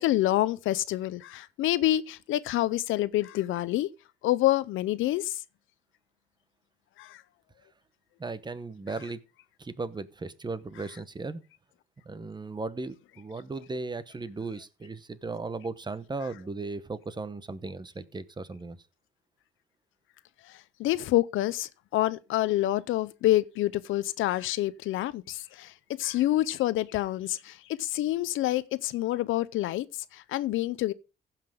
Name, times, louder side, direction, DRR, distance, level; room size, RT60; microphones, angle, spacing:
voice 1, 0.0-3.9 4.2-5.4 7.0-7.2 20.8-25.7 26.0-29.9 30.1-30.9, left 15 dB, 85° left, 0.6 m, -27 dB
voice 2, 8.2-9.2 9.6-11.4 12.0-18.8, right 3 dB, 20° right, 0.9 m, -36 dB
15.5 x 5.9 x 3.6 m
cardioid pair, 90°, 20 cm